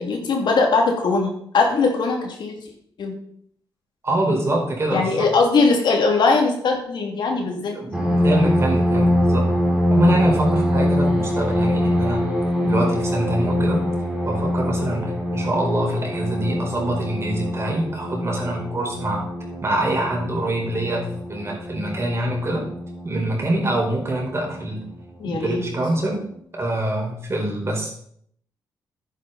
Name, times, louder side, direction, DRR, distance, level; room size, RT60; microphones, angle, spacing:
voice 1, 0.0-2.6 3.0-3.1 4.9-7.8 25.2-25.7, left 4 dB, 70° left, 2 dB, 2.8 m, -20 dB
voice 2, 4.0-5.3 7.7-9.5 9.9-12.3 12.6-13.9 14.2-19.2 19.6-22.7 23.0-24.8 25.2-26.2 26.5-27.9, right 1 dB, 35° right, -1 dB, 4.9 m, -24 dB
sound 1, 7.9-24.9 25.6-25.7 26.1-26.4, equal, 10° right, 3.8 m, -24 dB
10.5 x 9.9 x 4.2 m, 0.65 s
cardioid pair, 80°, 8 cm